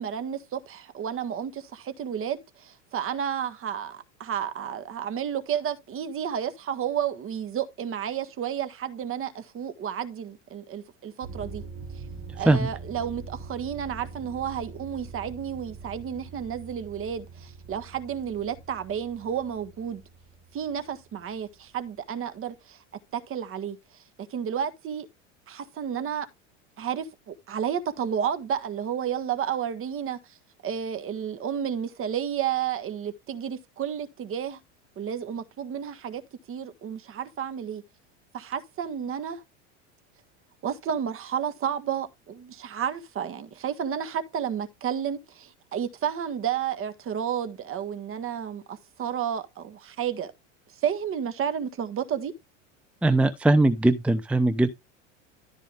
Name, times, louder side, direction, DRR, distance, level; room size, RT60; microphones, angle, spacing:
voice 1, 0.0-11.6 12.3-20.0 20.5-22.8 23.1-23.8 24.3-25.1 25.5-26.3 26.8-30.2 30.6-34.6 35.0-36.2 36.5-37.8 38.3-39.4 40.6-50.3 50.8-52.3, right 8 dB, 35° right, 1.6 m, -31 dB
sound 1, 11.2-22.0, right 4 dB, 55° right, 2.3 m, -43 dB
voice 2, 53.0-54.7, right 2 dB, 5° right, 0.6 m, -20 dB
13.0 x 5.0 x 3.5 m
hypercardioid pair, 105°, 37 cm